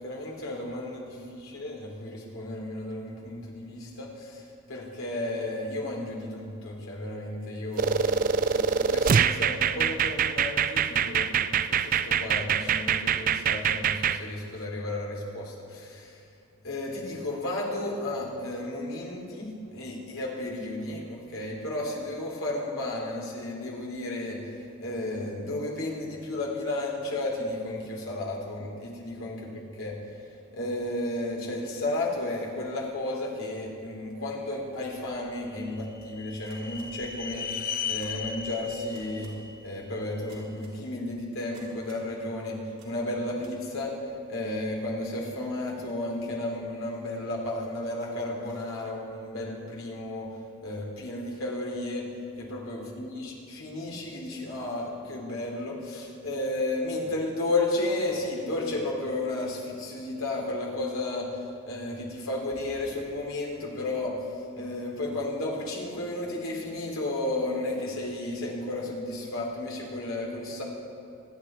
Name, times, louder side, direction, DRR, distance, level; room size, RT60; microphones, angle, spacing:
voice 1, 0.0-16.2 16.6-24.4 24.8-29.4 29.8-29.9 30.5-37.5 37.9-39.3 39.6-42.6 42.8-43.9 44.3-50.3 50.6-52.1 52.4-61.3 61.7-64.2 64.6-70.6, left 2 dB, 70° left, -2 dB, 3.3 m, -33 dB
sound 1, 7.8-14.2, right 7 dB, 40° right, 0.3 m, -24 dB
sound 2, 35.3-40.5, left 6 dB, 40° left, 0.6 m, -37 dB
sound 3, 36.5-36.8 37.7-38.1 38.9-39.3 40.3-40.7 41.5-42.1 42.8-42.9 43.4-43.5, right 5 dB, 85° right, 3.7 m, -54 dB
25.0 x 9.2 x 4.5 m, 2.5 s
head